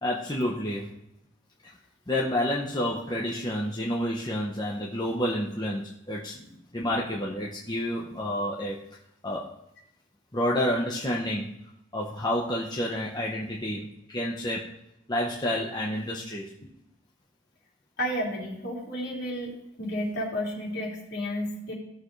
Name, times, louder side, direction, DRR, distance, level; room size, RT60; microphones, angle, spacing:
voice 1, 0.0-0.9 1.6-1.7 2.1-6.4 6.7-8.8 9.2-9.4 10.3-11.5 11.9-14.6 15.1-16.5, left 1 dB, 20° left, -3 dB, 1.0 m, -29 dB
voice 2, 18.0-19.5 19.8-21.7, equal, 55° left, -4 dB, 3.4 m, -32 dB
17.0 x 6.9 x 3.3 m, 0.83 s
head